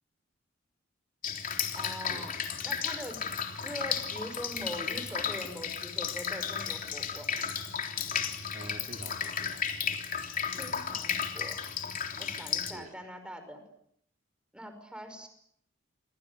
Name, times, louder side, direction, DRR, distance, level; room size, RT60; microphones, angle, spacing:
Drip, 1.2-12.7, left 7 dB, 40° left, 3.5 m, -34 dB
voice 1, 1.7-2.3 2.6-3.2 3.6-7.4 10.6-11.6 12.2-13.6 14.5-15.3, equal, 5° right, 7 dB, 5.5 m, -42 dB
voice 2, 8.5-9.6 10.4-10.6 12.3-12.9, right 1 dB, 40° right, 2 dB, 3.4 m, -48 dB
28.5 x 25.0 x 8.3 m, 0.73 s
head